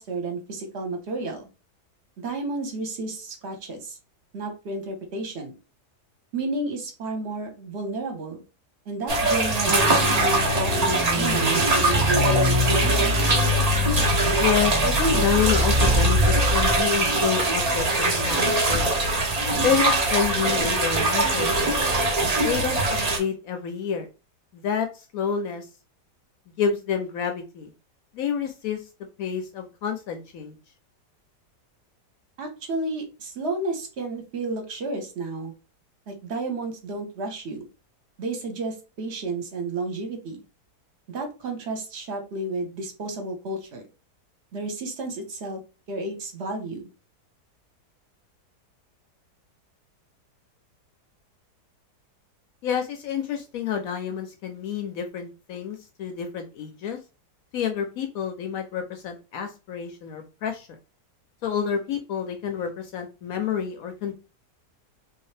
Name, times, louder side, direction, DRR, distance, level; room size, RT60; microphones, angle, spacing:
voice 1, 0.0-1.5 2.2-4.0 4.3-5.5 6.3-8.4 8.9-13.2 32.4-35.5 36.1-37.7 38.2-40.4 41.1-43.8 44.5-45.6 45.9-46.9, right 2 dB, 50° right, 5 dB, 1.0 m, -31 dB
sound 1, 9.1-23.2, right 2 dB, 85° right, 0.3 m, -22 dB
sound 2, 9.8-16.8, left 2 dB, 15° right, 1.0 m, -25 dB
voice 2, 14.4-19.0 19.6-21.8 22.4-22.8 23.1-24.1 24.5-24.9 25.1-25.7 26.6-27.7 28.1-28.8 29.2-30.6 52.6-57.0 57.5-60.7 61.4-64.1, left 7 dB, 70° left, 5 dB, 0.9 m, -28 dB
3.1 x 2.7 x 3.2 m, 0.30 s
omnidirectional pair, 1.8 m